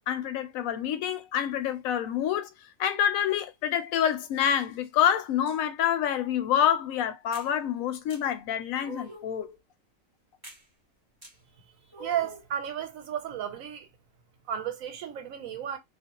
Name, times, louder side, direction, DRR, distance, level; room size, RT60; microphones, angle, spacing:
voice 1, 0.1-2.5 2.8-9.6, left 9 dB, 85° left, 1.0 m, -27 dB
sound 1, 7.3-7.5 8.1-8.2 8.8-9.4 10.4-10.6 11.2-11.3 11.9-12.5, right 1 dB, 20° right, 0.9 m, -44 dB
voice 2, 12.0-13.9 14.5-15.8, right 10 dB, 85° right, 1.1 m, -33 dB
2.5 x 2.1 x 2.8 m
omnidirectional pair, 1.4 m